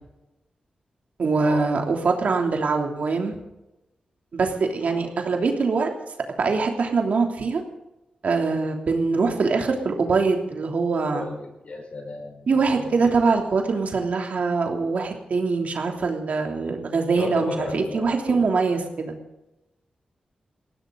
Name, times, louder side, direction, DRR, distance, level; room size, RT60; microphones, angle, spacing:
voice 1, 1.2-3.3 4.3-5.9 6.4-7.6 8.2-11.3 12.5-19.2, right 4 dB, 70° right, 3 dB, 3.0 m, -23 dB
voice 2, 11.1-13.1 17.1-18.4, left 2 dB, 55° left, 3 dB, 5.6 m, -34 dB
20.0 x 17.0 x 4.0 m, 0.95 s
cardioid pair, 80°, 3 cm